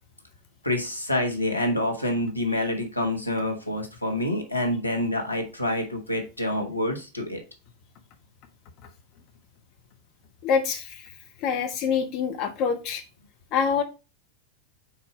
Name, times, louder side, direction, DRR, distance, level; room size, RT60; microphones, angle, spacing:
voice 1, 0.6-7.4, left 1 dB, 85° left, 2 dB, 1.2 m, -27 dB
voice 2, 10.4-11.1 11.4-13.0 13.5-13.8, left 6 dB, 40° left, 6 dB, 0.8 m, -25 dB
4.7 x 4.2 x 4.9 m, 0.31 s
figure-of-eight pair, 90°, 0 cm